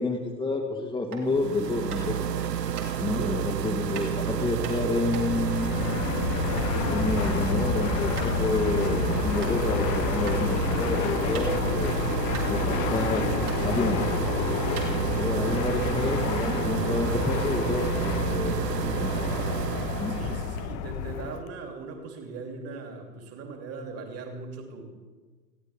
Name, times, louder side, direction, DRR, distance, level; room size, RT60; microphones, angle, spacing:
voice 1, 0.0-2.3 3.0-6.0 6.9-11.9 12.5-13.3 13.6-14.1 15.2-19.1 20.0-20.2, left 2 dB, 10° left, -2 dB, 1.7 m, -29 dB
sound 1, 1.0-1.3 1.9-2.2 2.7-2.9 3.9-4.1 4.6-6.7 7.0-7.4 7.7-7.8 8.2-8.4 8.8-8.9 9.4-9.5 10.2-10.4 10.8-11.8 12.0-12.1 12.3-13.1 13.4-13.6 14.2-14.3 14.7-15.4, right 6 dB, 65° right, 3.8 m, -40 dB
sound 2, 1.3-20.7, right 9 dB, 85° right, 0.6 m, -30 dB
voice 2, 3.0-3.4 20.1-24.9, right 4 dB, 30° right, 3 dB, 3.0 m, -39 dB
Fixed-wing aircraft airplane, 5.1-21.5, left 10 dB, 35° left, 0.9 m, -30 dB
20.5 x 16.0 x 3.6 m, 1.4 s
figure-of-eight pair, 90°, 48 cm